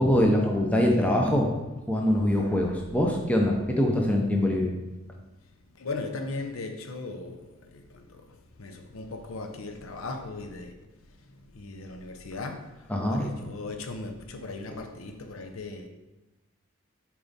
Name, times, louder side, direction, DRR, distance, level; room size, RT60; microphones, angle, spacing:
voice 1, 0.0-1.5 1.9-4.7 12.9-13.3, left 1 dB, 5° left, 0.6 m, -23 dB
voice 2, 5.8-7.4 8.6-10.7 11.6-12.6 13.1-15.9, left 3 dB, 90° left, 0.7 m, -37 dB
6.9 x 4.7 x 4.1 m
head